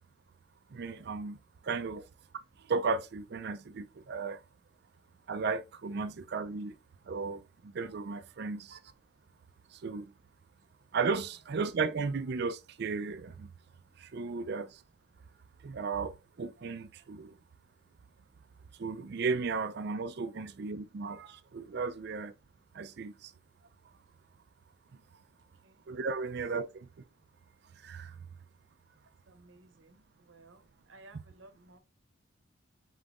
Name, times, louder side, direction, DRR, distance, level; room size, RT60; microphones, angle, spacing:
voice 1, 0.7-1.4 1.6-2.0 2.7-4.4 5.3-6.8 7.1-8.8 9.7-10.1 10.9-13.5 14.0-14.8 15.6-17.3 18.8-22.3 22.7-23.3 25.9-26.9 27.8-28.2, right 4 dB, 55° right, 0.4 m, -35 dB
voice 2, 25.3-25.9 26.2-26.3 29.3-31.8, right 3 dB, 70° right, 0.8 m, -56 dB
5.2 x 3.9 x 2.5 m
head